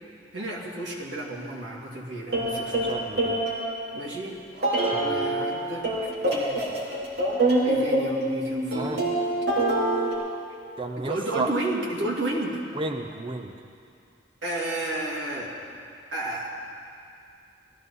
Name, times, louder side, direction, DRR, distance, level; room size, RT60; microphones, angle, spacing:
voice 1, 0.3-3.0 3.9-4.3 5.0-6.7 7.6-9.1 11.0-12.6 14.4-15.6 16.1-16.5, right 1 dB, 80° right, -2 dB, 2.3 m, -32 dB
sound 1, 2.3-4.0 4.6-5.5 5.8-10.1, right 1 dB, 60° right, 3.2 m, -25 dB
voice 2, 2.8-3.4 4.9-5.2 8.7-9.0 10.8-11.5 12.8-13.5, right 2 dB, 30° right, 4 dB, 0.6 m, -32 dB
18.5 x 13.0 x 4.1 m, 2.5 s
head